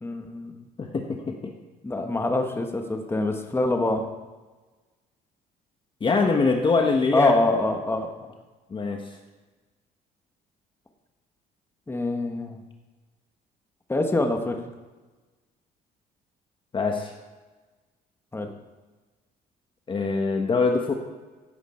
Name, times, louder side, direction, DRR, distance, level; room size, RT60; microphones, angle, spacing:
voice 1, 0.0-0.6 1.8-4.0 7.1-8.1 11.9-12.6 13.9-14.6 18.3-18.5, left 2 dB, 15° left, 4 dB, 1.4 m, -25 dB
voice 2, 0.8-1.5 6.0-7.4 8.7-9.1 16.7-17.1 19.9-20.9, left 4 dB, 30° left, 3 dB, 1.3 m, -23 dB
16.0 x 8.0 x 4.4 m, 1.3 s
cardioid pair, 110°, 17 cm